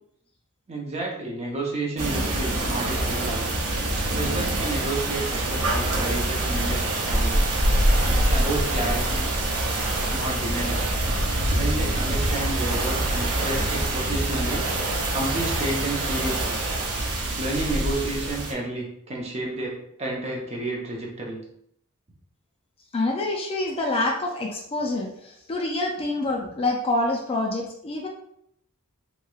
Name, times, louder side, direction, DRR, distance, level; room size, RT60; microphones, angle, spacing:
voice 1, 0.7-3.6 4.1-7.5 8.0-9.3 10.1-10.9 11.5-14.6 15.1-16.6 17.4-21.4, right 2 dB, 30° right, -2 dB, 0.7 m, -31 dB
sound 1, 2.0-18.5, right 1 dB, 65° right, 0.7 m, -25 dB
voice 2, 22.9-28.1, left 2 dB, 25° left, 0 dB, 0.4 m, -26 dB
3.0 x 2.8 x 2.3 m, 0.71 s
head